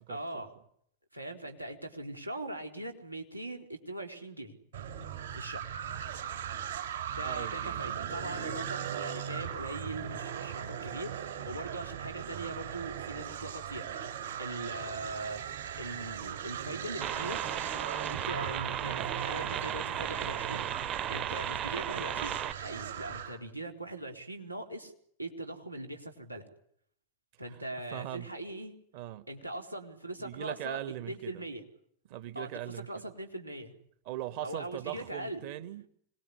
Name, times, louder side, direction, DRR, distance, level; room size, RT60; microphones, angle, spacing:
voice 1, 0.1-0.5 1.1-4.5 5.3-5.7 7.1-15.5 15.8-17.4 18.0-24.9 25.2-26.5 27.4-28.7 29.3-31.6 32.3-32.5 32.7-33.7 34.4-35.4, right 1 dB, 85° right, 4.1 m, -41 dB
sound 1, 4.7-23.4, right 9 dB, 65° right, 4.8 m, -39 dB
voice 2, 7.2-7.8 27.5-27.6 27.9-28.3 28.9-29.3 30.2-31.4 32.1-33.0 34.0-35.9, right 13 dB, 45° right, 1.7 m, -40 dB
sound 2, 17.0-22.5, right 10 dB, 30° right, 1.0 m, -35 dB
26.0 x 21.0 x 10.0 m
figure-of-eight pair, 90°, 0 cm